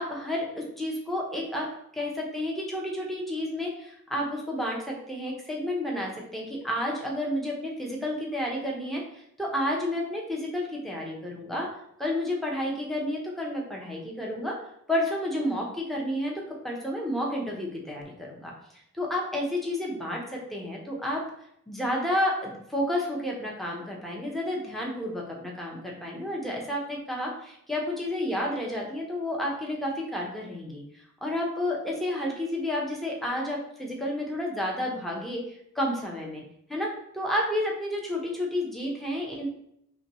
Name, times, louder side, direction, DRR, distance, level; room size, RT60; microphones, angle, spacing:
voice 1, 0.0-1.7 1.9-9.0 9.4-11.7 12.0-14.6 14.9-18.5 18.9-21.2 21.7-30.8 31.2-35.4 35.7-36.4 36.7-39.5, left 1 dB, ahead, -2 dB, 0.7 m, -31 dB
5.7 x 2.2 x 3.0 m, 0.75 s
head